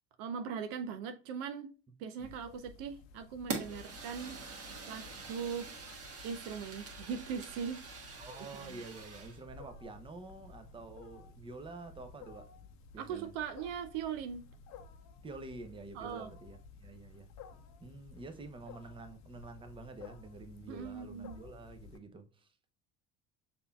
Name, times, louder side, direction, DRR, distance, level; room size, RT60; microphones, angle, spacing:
voice 1, 0.2-1.7 2.0-4.4 4.9-5.7 6.2-7.8 8.4-8.8 13.0-14.5 15.9-16.3 20.7-21.4, right 7 dB, 55° right, 0.6 m, -40 dB
Wild animals, 2.2-22.0, left 5 dB, 45° left, 0.7 m, -54 dB
Fire, 3.5-9.4, right 4 dB, 40° right, 1.5 m, -45 dB
voice 2, 8.2-12.5 12.9-13.3 15.2-17.3 17.8-22.5, right 3 dB, 15° right, 0.7 m, -48 dB
6.6 x 2.8 x 2.2 m
hypercardioid pair, 70°, 37 cm